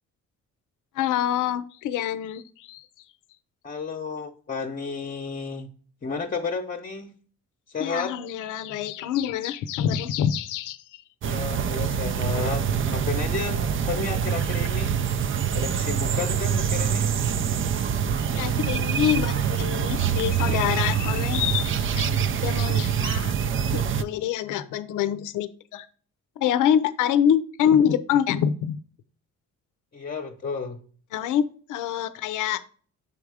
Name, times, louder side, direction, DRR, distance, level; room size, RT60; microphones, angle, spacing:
voice 1, 1.0-2.9 7.8-11.0 18.3-22.1 22.4-23.3 23.7-25.9 26.4-28.7 31.1-32.6, left 9 dB, 85° left, 0.6 m, -26 dB
voice 2, 3.6-5.7 6.0-7.1 7.7-8.2 11.2-15.0 15.5-17.2 29.9-30.8, left 5 dB, 30° left, 0.8 m, -32 dB
sound 1, 11.2-24.0, right 7 dB, 45° right, 0.5 m, -25 dB
7.2 x 3.6 x 4.7 m
cardioid pair, 90°, 30 cm